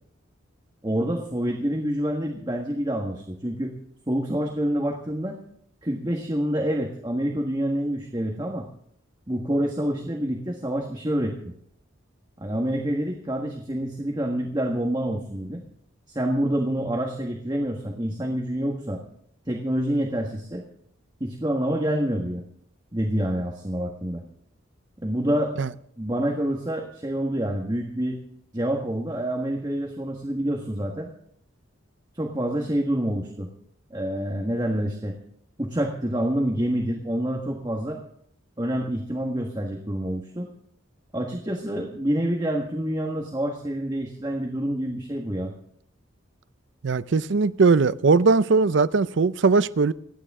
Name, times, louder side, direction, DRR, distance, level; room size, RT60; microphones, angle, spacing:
voice 1, 0.8-3.7 4.1-5.4 5.8-8.7 9.3-11.4 12.4-15.6 16.1-19.0 19.5-20.6 21.2-22.4 22.9-24.2 25.0-25.5 26.0-28.2 28.5-31.1 32.1-33.5 33.9-35.2 35.6-38.0 38.6-40.5 41.1-45.5, right 1 dB, 20° right, 1.6 m, -27 dB
voice 2, 46.8-49.9, right 4 dB, 65° right, 0.5 m, -20 dB
28.5 x 10.0 x 3.7 m
head